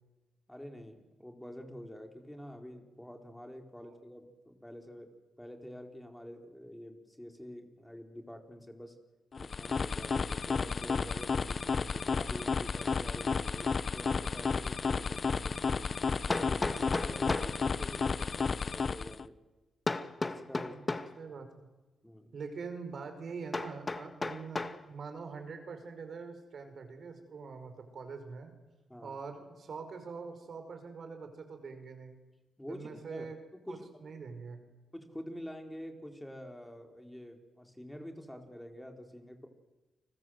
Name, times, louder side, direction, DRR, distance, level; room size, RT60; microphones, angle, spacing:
voice 1, 0.5-9.0 9.4-15.8 16.2-19.4 20.2-20.8 21.2-21.4 22.0-22.4 28.9-29.2 32.6-33.3 33.7-34.0 34.9-39.5, equal, 5° left, 4 dB, 4.0 m, -47 dB
sound 1, 9.3-19.3, left 5 dB, 45° left, 0.9 m, -32 dB
Hammer, 14.7-14.8 16.3-17.6 19.9-21.2 23.5-24.8, left 3 dB, 30° left, 1.8 m, -34 dB
voice 2, 20.4-20.9 21.2-21.7 22.3-28.5 29.0-32.2 32.7-33.4 33.7-34.6, right 5 dB, 60° right, 7 dB, 5.1 m, -44 dB
30.0 x 20.5 x 7.9 m, 1.1 s
cardioid pair, 85°, 0 cm